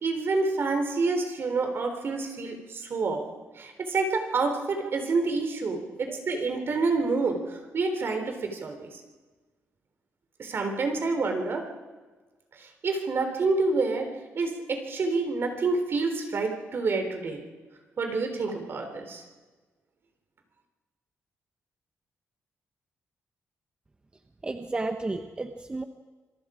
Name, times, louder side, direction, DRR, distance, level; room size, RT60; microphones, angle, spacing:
voice 1, 0.0-3.2 3.6-9.0 10.4-11.7 12.5-17.4 18.0-19.2, right 3 dB, 50° right, 5 dB, 3.7 m, -28 dB
voice 2, 24.4-25.8, right 2 dB, 20° right, 6 dB, 1.0 m, -32 dB
26.5 x 22.5 x 5.0 m, 1.3 s
cardioid pair, 110°, 5 cm